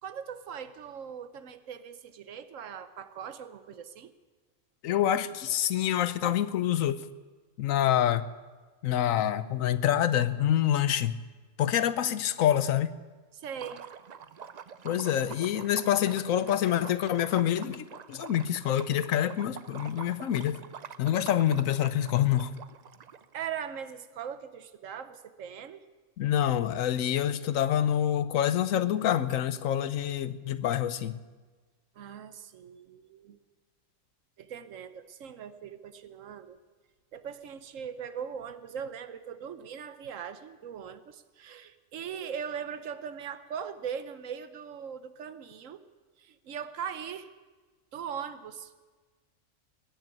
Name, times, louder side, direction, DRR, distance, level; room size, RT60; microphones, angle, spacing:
voice 1, 0.0-4.1 13.3-13.9 23.3-25.8 31.9-33.4 34.4-36.6 37.1-45.8 46.2-47.3 47.9-48.7, right 7 dB, 75° right, 12 dB, 1.2 m, -40 dB
voice 2, 4.8-7.0 7.6-8.2 8.8-11.2 11.6-12.9 14.8-20.6 21.0-22.5 26.2-31.2, left 11 dB, 85° left, 14 dB, 1.1 m, -26 dB
Liquid, 13.5-23.4, right 7 dB, 55° right, 0.4 m, -46 dB
21.0 x 7.0 x 9.1 m, 1.4 s
omnidirectional pair, 1.4 m